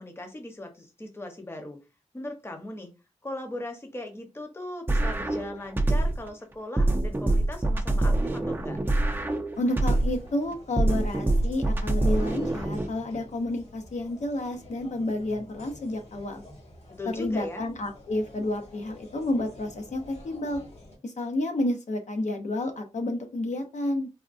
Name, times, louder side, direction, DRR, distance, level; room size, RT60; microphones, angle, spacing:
voice 1, 0.0-1.8 2.1-2.9 3.2-8.8 17.0-17.7, left 1 dB, 20° left, 4 dB, 0.8 m, -38 dB
sound 1, 4.9-6.3 6.8-10.3 10.8-12.9, right 2 dB, 15° right, 0.5 m, -25 dB
sound 2, 9.5-21.0, left 1 dB, 60° left, 1.2 m, -49 dB
voice 2, 9.6-16.4 17.1-20.6 21.0-24.1, left 1 dB, 75° left, 4 dB, 0.7 m, -30 dB
3.5 x 2.2 x 2.4 m, 0.28 s
wide cardioid pair, 75°, 12 cm